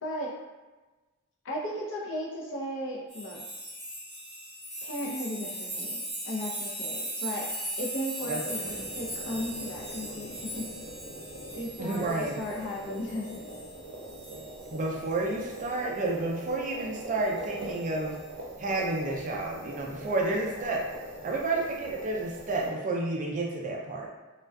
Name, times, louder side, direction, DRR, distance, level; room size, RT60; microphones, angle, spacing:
voice 1, 0.0-0.3 1.4-3.4 4.8-6.0 6.2-7.5 7.8-8.6 8.9-10.6 11.5-13.3, equal, 60° left, -3 dB, 0.5 m, -35 dB
sound 1, 3.1-13.8 14.1-15.1 15.5-15.7 17.4-17.6, right 1 dB, 5° left, 0.7 m, -38 dB
voice 2, 8.3-8.9 11.8-12.4 14.7-18.2 18.6-20.8 21.2-24.1, right 2 dB, 35° right, -1 dB, 0.3 m, -31 dB
sound 2, 8.6-22.7, right 1 dB, 90° right, 0.6 m, -42 dB
2.5 x 2.2 x 2.2 m, 1.2 s
head